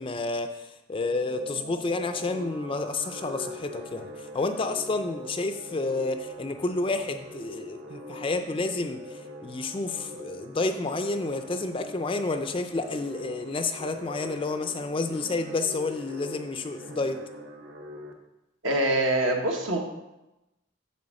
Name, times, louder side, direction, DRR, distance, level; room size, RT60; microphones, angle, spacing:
voice 1, 0.0-4.1 4.3-17.2, left 3 dB, 25° left, 8 dB, 0.4 m, -30 dB
sound 1, 1.0-18.1, left 1 dB, 55° right, 0.9 m, -42 dB
voice 2, 18.6-19.8, right 1 dB, 70° right, 1 dB, 1.2 m, -24 dB
8.8 x 3.4 x 6.3 m, 0.96 s
head